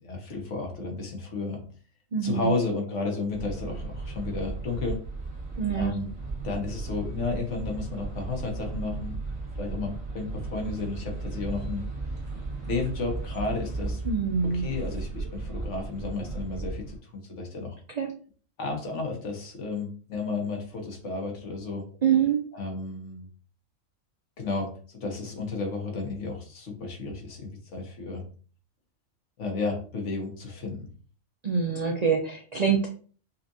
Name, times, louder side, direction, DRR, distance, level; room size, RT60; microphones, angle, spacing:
voice 1, 0.0-1.6 2.2-5.0 5.7-6.1 6.4-9.2 9.6-11.8 12.6-14.0 14.5-17.8 18.6-21.8 22.5-23.3 24.4-28.2 29.4-30.9, left 3 dB, 65° left, 1 dB, 1.3 m, -32 dB
voice 2, 2.1-2.6 5.6-5.9 14.1-14.6 18.0-18.1 22.0-22.4 31.4-32.9, right 6 dB, 55° right, 1 dB, 0.4 m, -25 dB
sound 1, 3.3-17.0, right 3 dB, 20° right, 1.4 m, -35 dB
5.4 x 2.4 x 2.6 m, 0.42 s
omnidirectional pair, 1.3 m